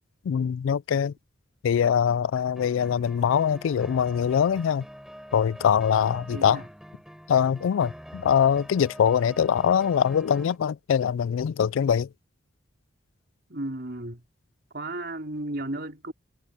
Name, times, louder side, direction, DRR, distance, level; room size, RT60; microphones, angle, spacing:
voice 1, 0.3-1.1 1.6-4.8 5.3-6.6 7.3-12.1, left 8 dB, 80° left, 0.3 m, -23 dB
sound 1, 2.6-10.6, equal, ahead, 4.8 m, -45 dB
voice 2, 6.3-6.7 13.5-14.2 14.7-16.1, right 1 dB, 55° right, 4.3 m, -34 dB
head